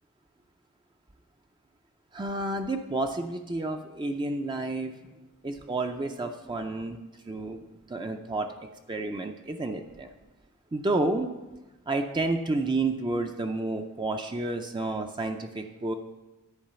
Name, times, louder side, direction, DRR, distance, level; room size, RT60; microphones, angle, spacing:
voice 1, 2.1-4.9 5.4-7.0 7.2-10.1 10.7-11.3 11.9-16.0, right 2 dB, 20° right, 5 dB, 0.4 m, -30 dB
10.5 x 4.8 x 6.8 m, 1.1 s
head